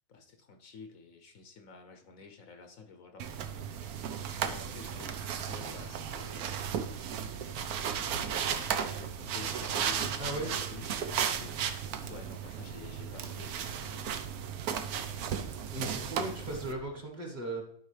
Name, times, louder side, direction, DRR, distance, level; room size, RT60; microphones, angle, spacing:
voice 1, 0.1-3.3 4.1-6.6 7.4-7.6 7.9-11.6 12.1-14.2 14.8-15.3 16.0-16.6, left 5 dB, 65° left, 6 dB, 1.1 m, -50 dB
sound 1, 3.2-16.7, right 8 dB, 75° right, 1.1 m, -35 dB
voice 2, 10.2-10.5 15.7-17.6, right 1 dB, 30° right, 1 dB, 1.4 m, -37 dB
11.5 x 5.1 x 3.2 m, 0.68 s
omnidirectional pair, 1.7 m